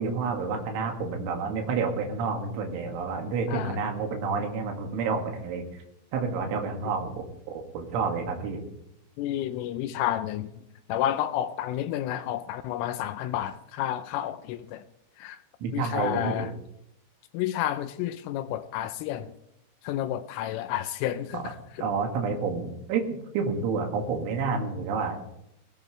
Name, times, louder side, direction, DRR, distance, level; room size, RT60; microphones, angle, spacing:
voice 1, 0.0-5.8 6.1-7.2 7.7-8.6 15.6-16.5 21.8-23.1 23.3-25.2, right 5 dB, 70° right, 3 dB, 4.3 m, -29 dB
voice 2, 3.5-3.8 9.2-10.5 10.9-14.8 15.2-15.4 15.7-16.5 17.3-19.3 19.8-21.9, left 12 dB, 80° left, 11 dB, 3.2 m, -30 dB
19.0 x 16.0 x 3.3 m, 0.79 s
omnidirectional pair, 6.0 m